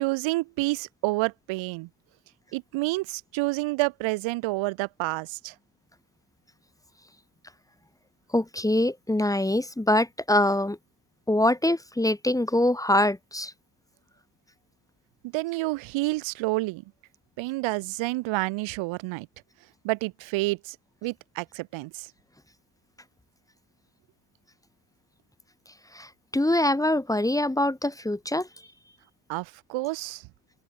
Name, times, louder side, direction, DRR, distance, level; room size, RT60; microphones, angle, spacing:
voice 1, 0.0-1.9 2.5-5.5 15.3-16.8 17.4-19.3 19.8-20.8 21.0-22.1 29.3-30.3, right 22 dB, 85° right, 3.8 m, -29 dB
voice 2, 8.3-10.8 11.3-13.5 25.9-28.5, left 1 dB, 5° left, 2.2 m, -24 dB
open air
cardioid pair, 105°, 45 cm